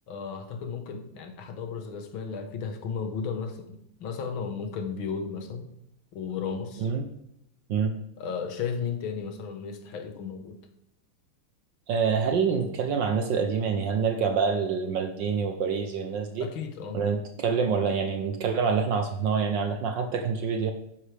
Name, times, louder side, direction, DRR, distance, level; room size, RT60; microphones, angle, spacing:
voice 1, 0.1-5.7 6.1-6.9 8.2-10.6 16.4-17.0, left 6 dB, 70° left, 5 dB, 2.0 m, -34 dB
voice 2, 11.9-16.5 16.9-20.7, right 6 dB, 65° right, 6 dB, 1.4 m, -26 dB
11.0 x 9.8 x 3.4 m, 0.79 s
omnidirectional pair, 2.4 m